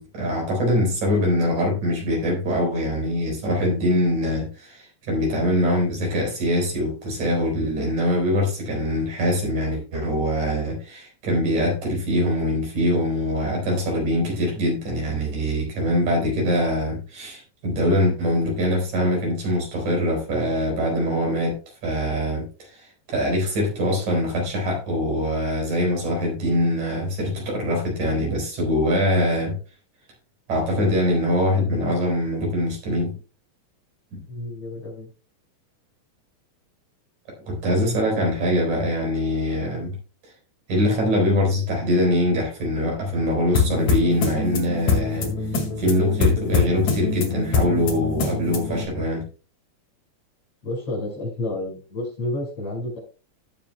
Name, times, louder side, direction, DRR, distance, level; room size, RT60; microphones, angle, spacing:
voice 1, 0.0-29.6 30.5-33.1 34.1-34.2 37.3-40.0 40.7-45.3 45.8-49.3, equal, 65° right, 5.9 m, -23 dB
voice 2, 34.3-35.1 50.6-53.0, left 1 dB, 50° left, 6.4 m, -30 dB
sound 1, 43.5-48.9, left 4 dB, 65° left, 3.3 m, -24 dB
17.5 x 7.5 x 2.3 m
omnidirectional pair, 3.6 m